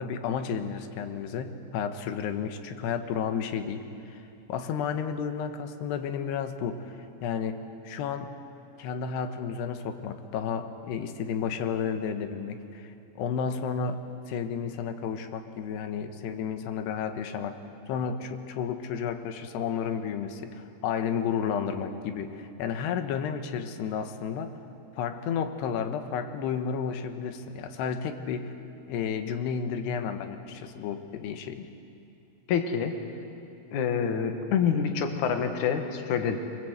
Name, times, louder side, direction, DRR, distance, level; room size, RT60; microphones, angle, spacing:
voice 1, 0.0-4.2 4.5-8.4 8.8-14.0 14.3-17.6 17.9-24.5 25.0-28.6 28.9-31.7, left 7 dB, 80° left, 8 dB, 3.3 m, -32 dB
voice 2, 32.5-32.9 33.7-36.4, left 7 dB, 60° left, 6 dB, 2.5 m, -27 dB
25.0 x 23.5 x 8.1 m, 2.7 s
omnidirectional pair, 4.8 m